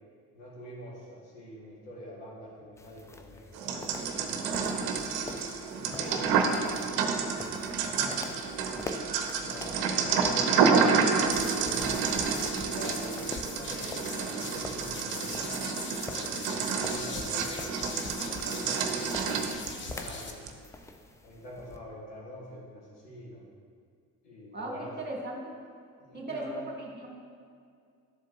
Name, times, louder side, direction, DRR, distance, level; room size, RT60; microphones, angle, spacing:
voice 1, 0.3-5.0 5.7-7.0 7.7-8.8 9.4-12.0 12.6-15.4 16.0-20.4 21.2-23.4 24.2-25.0 26.0-26.6, equal, 65° left, -7 dB, 2.1 m, -45 dB
sound 1, 2.8-21.8, left 2 dB, 5° left, 0.3 m, -46 dB
sound 2, 3.5-20.1 20.5-20.6, right 5 dB, 55° right, 0.8 m, -29 dB
sound 3, 11.3-20.3, left 4 dB, 25° left, 0.8 m, -41 dB
voice 2, 24.5-25.5 26.1-27.1, right 1 dB, 20° right, -2 dB, 2.0 m, -37 dB
11.5 x 7.4 x 2.4 m, 2.3 s
figure-of-eight pair, 55°, 45 cm